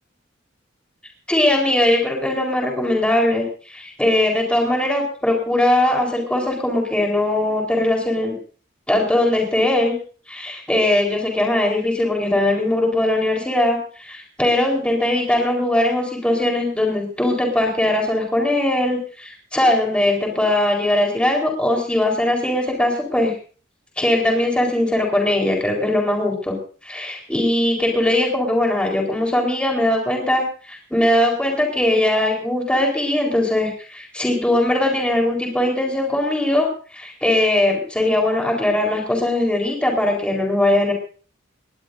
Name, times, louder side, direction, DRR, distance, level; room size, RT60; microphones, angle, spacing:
voice 1, 1.3-8.3 8.9-9.9 10.3-23.3 24.0-26.6 26.8-40.9, left 1 dB, 5° left, 0 dB, 4.1 m, -20 dB
19.5 x 19.5 x 2.6 m, 0.40 s
head